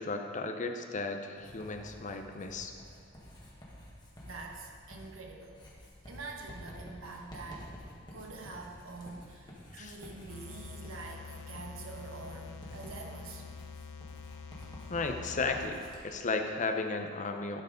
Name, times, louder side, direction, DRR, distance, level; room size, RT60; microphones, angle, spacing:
voice 1, 0.0-2.7 9.8-9.9 14.9-17.6, left 3 dB, 40° left, 6 dB, 0.6 m, -34 dB
Writing, 1.4-16.0, equal, 20° left, 1.6 m, -50 dB
voice 2, 4.2-7.7 8.1-13.7, right 3 dB, 75° right, 1 dB, 1.2 m, -46 dB
sound 1, 10.3-15.7, left 5 dB, 80° left, 0.4 m, -46 dB
11.5 x 4.6 x 5.1 m, 2.2 s
head